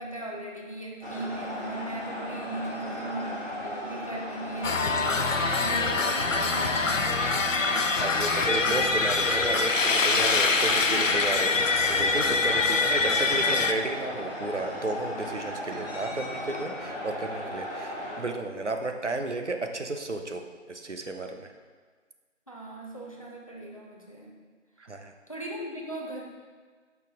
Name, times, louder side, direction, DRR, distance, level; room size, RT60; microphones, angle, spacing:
voice 1, 0.0-7.0 22.5-24.3 25.3-26.2, right 2 dB, 25° left, -2 dB, 0.8 m, -39 dB
sound 1, 1.0-18.2, equal, 45° left, 2.4 m, -36 dB
sound 2, 4.6-13.7, left 4 dB, 80° left, 0.7 m, -24 dB
sound 3, 6.6-7.4 7.9-8.7 9.3-9.9 10.2-11.8 12.6-12.7, equal, 10° left, 1.5 m, -46 dB
voice 2, 7.7-11.5 11.9-21.5 24.8-25.1, right 2 dB, 65° right, 5 dB, 1.0 m, -33 dB
10.5 x 5.7 x 3.7 m, 1.5 s
figure-of-eight pair, 165°, 38 cm